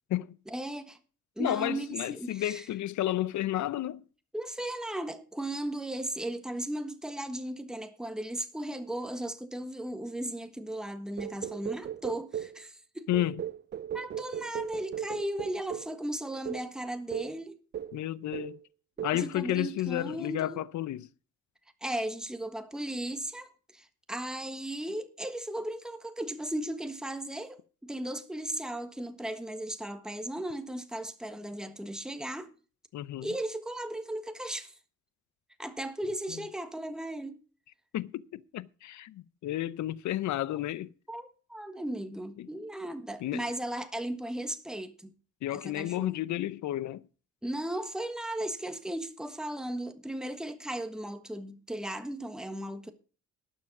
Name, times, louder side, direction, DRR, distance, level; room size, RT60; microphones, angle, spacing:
voice 1, 0.5-1.0 1.4-2.7 4.3-13.1 13.9-17.6 19.1-20.6 21.8-32.5 33.2-34.7 35.6-37.4 41.1-45.1 45.5-46.2 47.4-52.9, right 1 dB, ahead, 1.4 m, -36 dB
voice 2, 1.4-4.0 13.1-13.4 17.9-18.6 19.0-21.1 32.9-33.3 36.3-36.4 37.9-40.9 42.4-42.5 43.2-43.4 45.4-47.1, left 14 dB, 70° left, 0.7 m, -32 dB
sound 1, 11.2-12.6 13.1-16.0 16.4-16.7 17.1-17.4 17.7-18.0 18.3-18.6 19.0-19.2, right 10 dB, 35° right, 0.5 m, -37 dB
12.0 x 7.3 x 6.0 m
cardioid pair, 90°, 30 cm